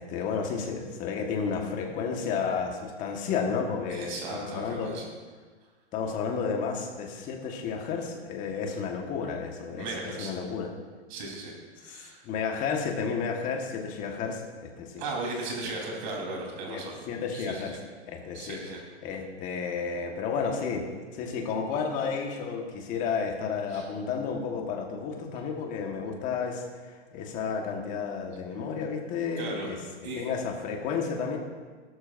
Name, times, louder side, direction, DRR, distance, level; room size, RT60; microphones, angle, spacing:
voice 1, 0.0-4.9 5.9-9.9 10.2-10.7 11.9-15.0 16.7-17.8 18.1-18.6 19.0-20.9 21.1-29.8 30.2-31.4, left 5 dB, 20° left, 2 dB, 1.5 m, -32 dB
voice 2, 3.9-5.0 9.8-10.3 11.1-12.3 15.0-17.0 17.3-17.8 18.3-18.8 23.7-23.9 29.4-29.7 30.0-30.3, right 2 dB, 45° right, -1 dB, 3.9 m, -36 dB
17.0 x 12.5 x 2.6 m, 1.5 s
hypercardioid pair, 150°, 35 cm